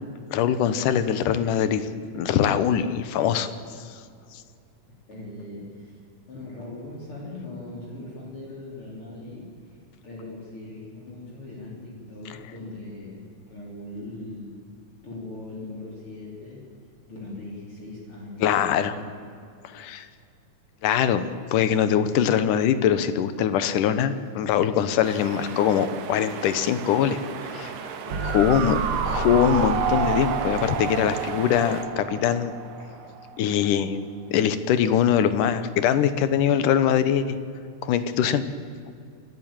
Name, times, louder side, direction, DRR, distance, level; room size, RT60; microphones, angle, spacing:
voice 1, 0.3-1.8 2.1-3.5 18.4-19.0 19.6-20.1 20.8-27.9 28.3-28.8 29.1-32.5 33.4-34.0 34.3-37.4 37.8-38.4, left 9 dB, 75° left, 12 dB, 2.5 m, -22 dB
voice 2, 5.1-6.0 6.3-9.8 10.0-14.6 15.0-16.6 17.1-19.0 28.1-28.9, left 2 dB, 40° left, -4 dB, 4.4 m, -40 dB
sound 1, 25.0-31.8, right 7 dB, 85° right, 3.1 m, -38 dB
sound 2, 28.1-33.4 33.6-33.7, right 7 dB, 60° right, 1.5 m, -28 dB
27.5 x 12.5 x 8.9 m, 2.4 s
omnidirectional pair, 3.8 m